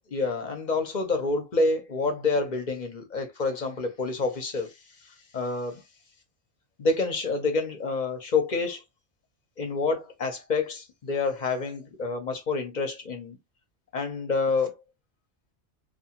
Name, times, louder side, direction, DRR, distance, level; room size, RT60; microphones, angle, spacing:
voice 1, 0.1-4.7 5.3-5.8 6.8-8.8 9.6-13.4 13.9-14.8, left 3 dB, 45° left, 0.7 m, -28 dB
2.5 x 2.3 x 2.8 m
omnidirectional pair, 1.2 m